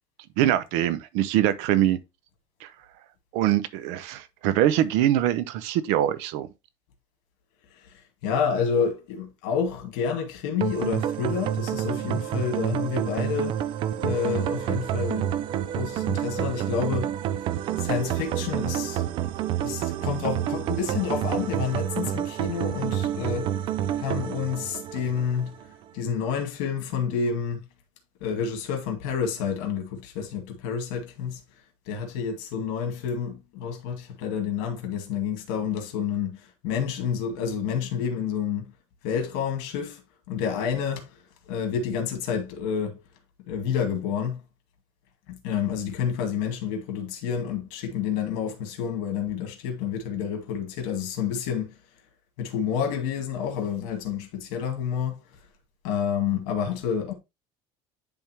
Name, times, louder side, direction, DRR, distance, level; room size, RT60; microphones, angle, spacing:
voice 1, 0.4-2.0 2.6-2.7 3.3-6.5, right 12 dB, 75° right, 0.7 m, -23 dB
voice 2, 7.7-13.6 14.0-17.4 17.7-19.1 19.6-25.5 25.9-27.6 28.2-31.4 31.9-38.6 39.0-43.0 43.5-44.4 45.3-51.8 52.4-55.5 55.8-57.1, left 7 dB, 80° left, 2.1 m, -29 dB
sound 1, 10.6-25.7, right 10 dB, 45° right, 0.4 m, -28 dB
10.5 x 3.5 x 2.9 m
cardioid pair, 165°, 12 cm